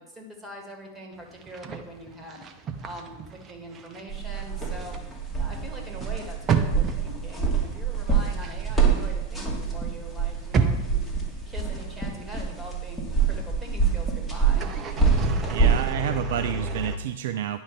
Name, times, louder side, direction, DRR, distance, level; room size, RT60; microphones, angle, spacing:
voice 1, 0.0-5.0 5.4-14.7, equal, 10° right, 1 dB, 2.1 m, -43 dB
sound 1, 1.4-4.0 4.3-9.5 9.8-11.8 12.2-12.3 14.5-17.0, right 4 dB, 25° right, 0.8 m, -31 dB
sound 2, 4.1-15.9, right 5 dB, 5° left, 1.9 m, -26 dB
voice 2, 15.5-17.6, right 10 dB, 55° right, 9 dB, 0.4 m, -29 dB
10.0 x 5.6 x 4.7 m, 1.1 s
figure-of-eight pair, 90°, 0 cm